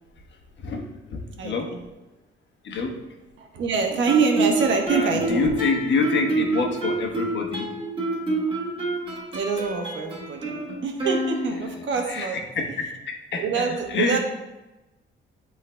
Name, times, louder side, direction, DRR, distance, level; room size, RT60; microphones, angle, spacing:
voice 1, 0.6-1.6 2.6-2.9 4.9-7.7 12.1-12.6 13.3-14.2, left 4 dB, 65° left, 2 dB, 1.2 m, -26 dB
voice 2, 1.4-1.8 3.4-5.5 9.3-12.4 13.4-14.2, right 5 dB, 70° right, 3 dB, 1.1 m, -25 dB
Guitar, 4.1-11.8, right 2 dB, 30° right, 1.7 m, -28 dB
11.5 x 3.8 x 2.2 m, 1.0 s
cardioid pair, 90°, 20 cm